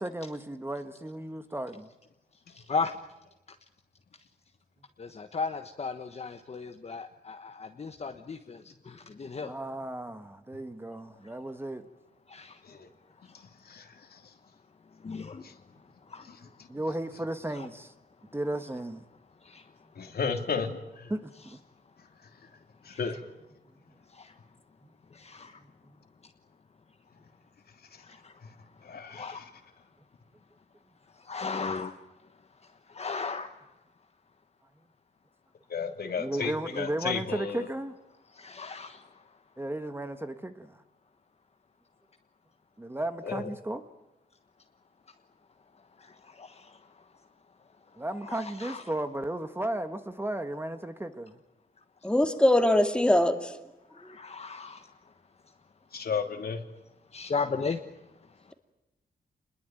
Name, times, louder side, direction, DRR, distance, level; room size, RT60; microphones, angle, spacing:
voice 1, 0.0-1.9 9.4-11.8 16.7-17.9 18.3-19.0 20.0-20.1 21.1-21.6 36.2-38.0 39.6-40.8 42.8-43.9 48.0-51.4, right 1 dB, 15° right, 1.3 m, -34 dB
voice 2, 2.6-3.0 5.0-9.5 11.2-11.3 12.3-12.6 13.3-13.4 15.0-15.5 16.1-16.3 17.5-17.7 19.4-19.7 22.8-23.2 24.1-24.3 25.1-25.6 28.0-28.3 29.1-29.4 31.1-32.0 32.6-33.5 38.3-39.2 46.0-47.0 48.2-48.8 53.9-55.0 57.1-57.8 58.5-58.6, left 4 dB, 40° left, 1.4 m, -36 dB
voice 3, 13.7-14.2 15.4-15.5 20.0-21.1 22.8-23.2 28.8-29.4 35.7-37.7 43.2-43.5 55.9-56.6, left 6 dB, 65° left, 3.0 m, -33 dB
voice 4, 52.0-53.5, left 1 dB, 5° left, 2.3 m, -22 dB
27.0 x 21.5 x 9.1 m
wide cardioid pair, 110°, 17 cm